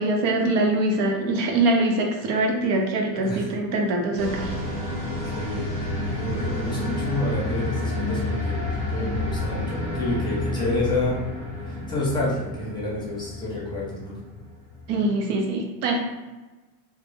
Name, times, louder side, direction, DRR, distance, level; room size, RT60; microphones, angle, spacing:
voice 1, 0.0-4.5 14.9-16.0, right 2 dB, 85° right, 2 dB, 0.7 m, -23 dB
sound 1, 4.2-15.0, left 1 dB, 15° right, 0.3 m, -30 dB
voice 2, 5.2-11.2 11.6-14.2, left 2 dB, 10° left, -6 dB, 0.7 m, -29 dB
2.1 x 2.0 x 3.2 m, 1.2 s
cardioid pair, 135°, 48 cm